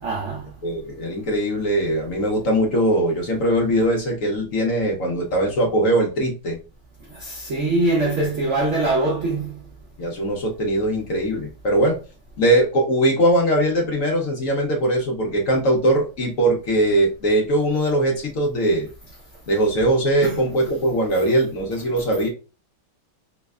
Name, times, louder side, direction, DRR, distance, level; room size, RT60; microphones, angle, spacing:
voice 1, 0.0-0.5 7.0-9.6 20.2-20.4, right 2 dB, 70° right, 0.7 m, -23 dB
voice 2, 0.6-6.6 10.0-12.0 12.4-18.9 19.5-22.3, right 1 dB, 70° left, 0.7 m, -21 dB
3.3 x 3.2 x 2.3 m
omnidirectional pair, 2.3 m